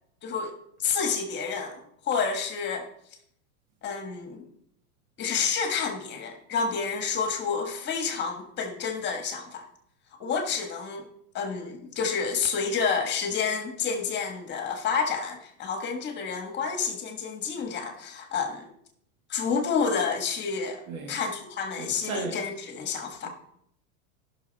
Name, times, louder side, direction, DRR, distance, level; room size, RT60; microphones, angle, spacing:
voice 1, 0.2-0.5 0.8-2.9 3.8-4.4 5.2-9.6 10.2-11.1 11.3-18.7 19.3-20.8 21.1-23.3, left 5 dB, 25° left, 1.5 m, -29 dB
voice 2, 20.9-21.2 21.8-22.4 23.2-23.3, right 4 dB, 80° right, 2.2 m, -36 dB
15.0 x 6.2 x 4.1 m
supercardioid pair, 155°, 42 cm